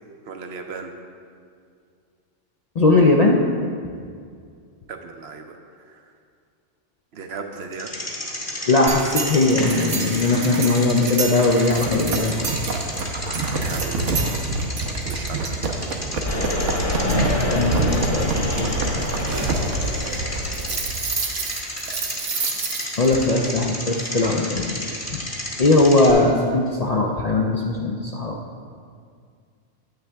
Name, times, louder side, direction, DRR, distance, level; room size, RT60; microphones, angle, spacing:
voice 1, 0.3-0.9 4.9-5.6 5.9-6.0 7.1-7.9 13.7-14.3 15.0-15.5, right 5 dB, 65° right, 5 dB, 0.9 m, -36 dB
voice 2, 2.8-3.4 8.7-12.4 17.0-18.7 23.0-24.8 25.1-25.2 25.6-28.4, left 2 dB, 50° left, 0 dB, 0.5 m, -19 dB
Bicycle, 7.7-26.1, left 1 dB, 15° left, 1.0 m, -33 dB
sound 1, 8.9-23.1, right 3 dB, 85° right, 1.2 m, -27 dB
sound 2, 16.2-20.8, equal, 70° left, 1.6 m, -27 dB
9.1 x 8.5 x 3.4 m, 2.2 s
omnidirectional pair, 1.2 m